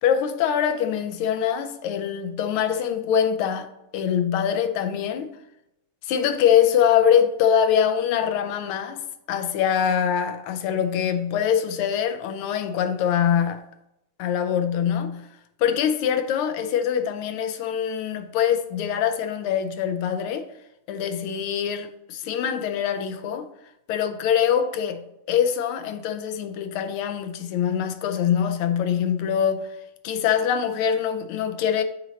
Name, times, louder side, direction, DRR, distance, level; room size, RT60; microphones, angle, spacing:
voice 1, 0.0-5.4 6.0-9.0 9.3-13.6 14.2-15.3 15.6-20.5 20.9-23.5 23.9-29.7 30.0-31.8, left 8 dB, 85° left, 1.5 m, -23 dB
7.6 x 3.2 x 3.9 m
omnidirectional pair, 2.3 m